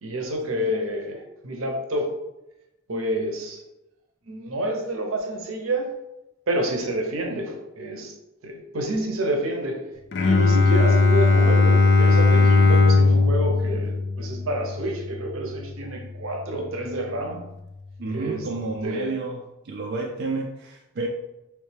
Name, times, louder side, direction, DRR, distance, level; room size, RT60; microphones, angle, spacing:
voice 1, 0.0-2.2 2.9-3.6 4.3-6.0 6.5-8.1 8.4-9.9 10.2-17.5 18.1-18.5 18.8-19.2, right 1 dB, 80° right, 3 dB, 0.7 m, -28 dB
Bowed string instrument, 10.1-15.8, left 3 dB, 55° left, 0.4 m, -18 dB
voice 2, 18.0-21.1, right 3 dB, 50° right, 0 dB, 0.3 m, -30 dB
3.2 x 3.2 x 3.2 m, 0.95 s
head